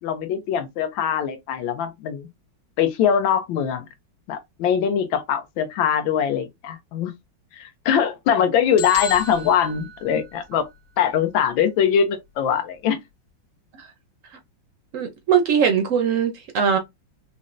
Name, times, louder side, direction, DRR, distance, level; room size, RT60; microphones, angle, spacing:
voice 1, 0.0-2.3 2.8-3.9 4.3-7.1 7.5-10.7 11.0-13.0, left 8 dB, 85° left, 1.4 m, -22 dB
sound 1, 8.8-10.7, left 4 dB, 55° left, 2.0 m, -34 dB
voice 2, 14.9-16.8, right 7 dB, 70° right, 0.7 m, -21 dB
5.0 x 2.1 x 2.5 m
omnidirectional pair, 2.1 m